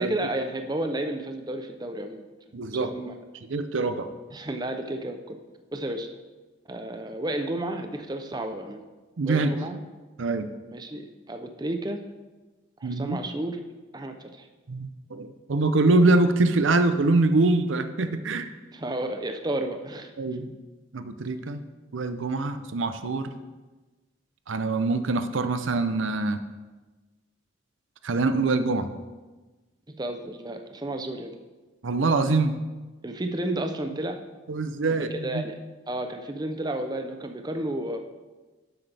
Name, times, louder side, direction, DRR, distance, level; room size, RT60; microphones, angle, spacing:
voice 1, 0.0-2.2 2.7-3.1 4.3-5.4 5.7-6.1 6.7-8.8 9.2-9.8 10.7-12.0 12.8-13.6 13.9-14.5 18.7-20.1 30.0-31.3 33.0-34.2 35.0-35.6 35.9-38.0, right 1 dB, 20° right, 6 dB, 0.6 m, -32 dB
voice 2, 2.5-2.9 3.5-4.1 9.2-9.5 10.2-10.5 12.8-13.2 14.7-18.5 20.2-20.5 20.9-21.6 21.9-23.3 24.5-26.4 28.0-28.9 31.8-32.6 34.5-35.4, right 3 dB, 80° right, 10 dB, 0.6 m, -24 dB
12.0 x 7.9 x 3.4 m, 1.2 s
head